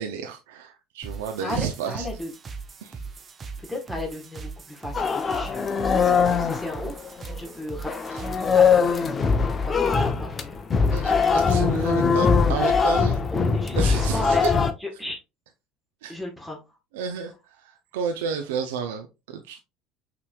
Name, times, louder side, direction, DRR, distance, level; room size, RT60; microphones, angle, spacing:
voice 1, 0.0-2.1 2.8-3.0 8.1-8.2 10.9-13.2 13.8-14.5 16.0-16.2 16.9-19.6, right 7 dB, 85° right, 4 dB, 0.5 m, -31 dB
sound 1, 1.0-8.6, right 4 dB, 35° right, 0.7 m, -39 dB
voice 2, 1.4-2.3 3.7-9.1 9.6-10.6 10.9-11.0 11.4-11.5 11.9-12.2 13.3-14.5 15.0-15.2 16.1-16.6, left 1 dB, 5° left, 0 dB, 1.4 m, -36 dB
sound 2, 4.9-7.5 7.8-14.7, left 5 dB, 30° left, 0.6 m, -21 dB
5.8 x 3.1 x 2.3 m, 0.26 s
supercardioid pair, 90°, 0 cm